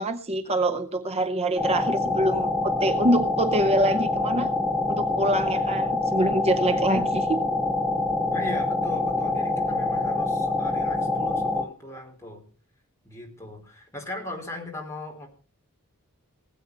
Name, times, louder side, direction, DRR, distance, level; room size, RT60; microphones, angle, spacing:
voice 1, 0.0-4.5 4.9-7.4, right 1 dB, 30° right, 8 dB, 0.7 m, -25 dB
sound 1, 1.6-11.6, left 2 dB, 5° right, 1.0 m, -25 dB
voice 2, 8.3-12.4 13.0-15.3, left 1 dB, 15° left, 1 dB, 4.2 m, -38 dB
19.5 x 8.5 x 5.4 m, 0.38 s
head